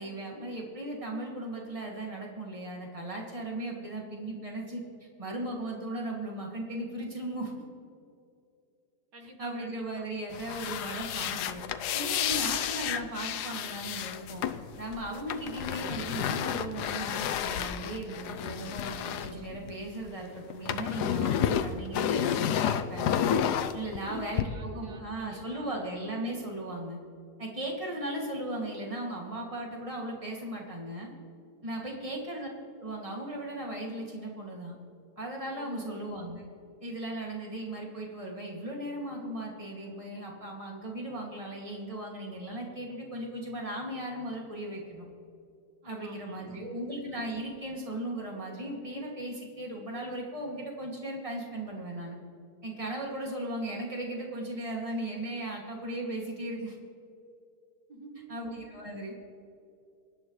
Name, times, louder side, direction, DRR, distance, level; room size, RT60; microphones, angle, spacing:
voice 1, 0.0-4.8 5.2-7.5 9.4-11.6 11.9-14.5 14.8-23.1 23.7-27.0 27.4-31.1 31.6-32.5 32.8-34.7 35.2-36.4 36.8-45.1 45.8-52.2 52.6-56.8 58.3-59.1, right 1 dB, 20° right, -2 dB, 2.4 m, -37 dB
voice 2, 9.1-10.1 24.0-25.8 31.8-32.2 35.5-35.9 45.8-46.7 57.9-58.4, right 3 dB, 80° right, 2 dB, 2.2 m, -49 dB
sound 1, 10.3-20.1 20.4-24.4, left 9 dB, 85° left, 1.3 m, -31 dB
25.0 x 10.5 x 3.2 m, 2.5 s
omnidirectional pair, 1.7 m